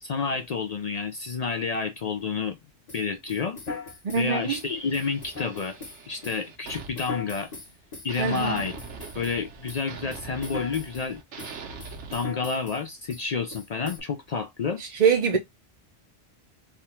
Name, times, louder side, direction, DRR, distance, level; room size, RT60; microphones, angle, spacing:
voice 1, 0.0-2.6 2.9-3.6 4.1-5.8 6.1-7.5 8.0-8.8 9.1-11.2 12.1-14.8, left 5 dB, 60° left, 0.4 m, -29 dB
sound 1, 2.9-9.4 9.7-11.1 11.4-12.8 13.1-13.3 13.5-14.0, left 4 dB, 35° left, 1.2 m, -40 dB
voice 2, 4.0-4.6 8.2-8.6 14.8-15.4, right 6 dB, 50° right, 0.6 m, -23 dB
sound 2, 4.1-7.8 8.1-12.1, right 5 dB, 80° right, 1.1 m, -43 dB
3.5 x 2.3 x 4.2 m
omnidirectional pair, 1.2 m